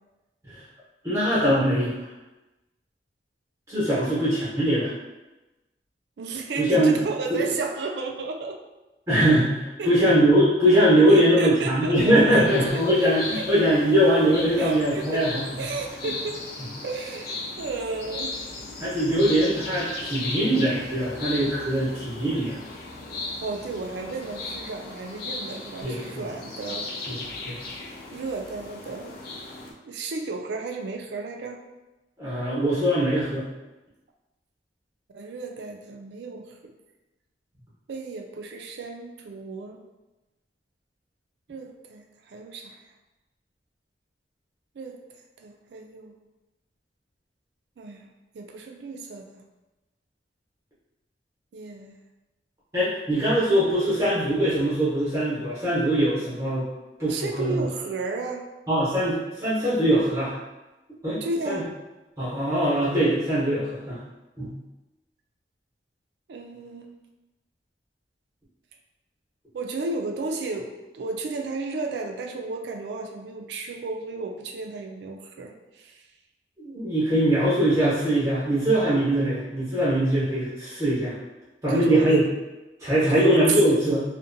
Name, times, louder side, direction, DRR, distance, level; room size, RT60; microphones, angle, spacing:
voice 1, 1.0-2.1 3.7-4.9 6.5-7.0 7.3-7.4 9.1-15.4 18.8-22.6 25.8-26.2 27.1-27.5 32.2-33.5 52.7-56.6 57.0-57.6 58.7-60.3 61.0-61.6 62.2-64.0 64.4-64.5 76.6-81.1 81.6-82.2 82.8-84.0, right 1 dB, 15° right, -10 dB, 0.8 m, -22 dB
voice 2, 6.2-8.6 9.8-10.1 11.1-12.0 12.3-12.9 13.3-13.4 14.6-15.3 15.6-16.4 16.8-18.4 23.4-26.9 28.1-29.2 29.8-31.6 35.1-36.6 37.9-39.8 41.5-42.8 44.8-45.0 45.4-46.1 47.8-48.1 48.3-49.4 51.5-52.0 57.1-58.5 61.2-61.7 66.3-67.0 69.5-76.0 81.7-82.2 83.0-83.8, right 3 dB, 70° right, 3 dB, 0.3 m, -33 dB
sound 1, 12.5-29.7, left 3 dB, 55° left, 0.4 m, -37 dB
2.6 x 2.1 x 2.5 m, 1.0 s
head